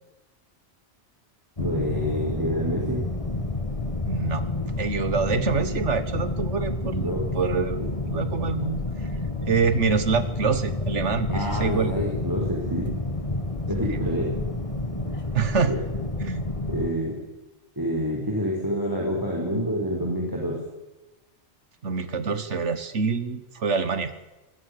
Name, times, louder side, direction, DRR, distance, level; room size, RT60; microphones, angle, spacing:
sound 1, 1.6-16.9, left 2 dB, 30° left, 2.0 m, -29 dB
voice 1, 1.6-3.0 7.0-7.4 7.8-7.9 11.3-12.9 13.7-14.3 15.7-15.8 16.7-17.1 17.8-20.6, equal, 20° right, -2 dB, 4.8 m, -27 dB
voice 2, 4.1-4.4 4.8-8.8 9.4-11.9 13.8-14.1 15.3-15.7 16.2-16.4 21.8-24.1, right 5 dB, 80° right, 12 dB, 1.8 m, -26 dB
23.0 x 20.0 x 6.8 m, 1.0 s
omnidirectional pair, 1.2 m